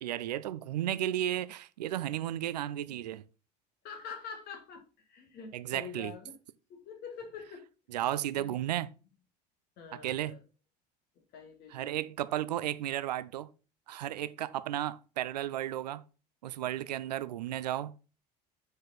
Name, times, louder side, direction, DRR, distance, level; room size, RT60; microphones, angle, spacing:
voice 1, 0.0-3.2 5.5-6.1 7.9-8.9 9.9-10.4 11.7-13.5 13.9-16.0 16.4-17.9, right 12 dB, 75° right, 0.5 m, -34 dB
voice 2, 3.8-6.4 6.7-7.7 8.3-8.6 9.8-10.4 11.3-12.0, left 6 dB, 50° left, 1.9 m, -45 dB
6.6 x 4.9 x 4.0 m
figure-of-eight pair, 70°, 21 cm